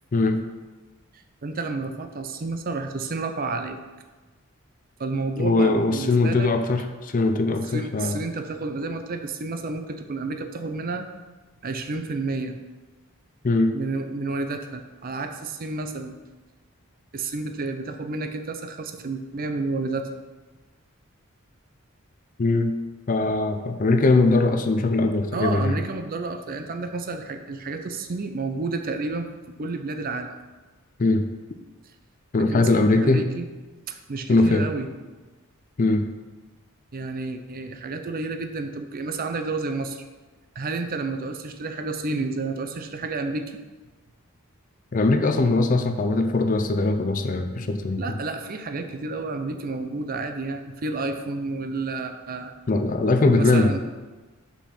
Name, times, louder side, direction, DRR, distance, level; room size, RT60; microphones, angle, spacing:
voice 1, 1.4-3.8 5.0-6.5 7.7-11.1 11.6-12.6 13.7-16.2 17.1-20.1 25.3-29.3 29.6-30.3 32.4-32.7 33.0-33.5 33.9-34.9 36.9-40.0 40.6-43.5 48.0-52.5 53.2-53.8, right 3 dB, 40° right, 7 dB, 0.5 m, -30 dB
voice 2, 5.4-8.2 13.4-13.7 22.4-22.7 23.1-25.8 31.0-31.3 32.3-33.2 34.3-34.7 35.8-36.0 44.9-48.0 52.7-53.7, left 2 dB, 40° left, 7 dB, 0.5 m, -21 dB
5.8 x 4.3 x 5.7 m, 1.2 s
head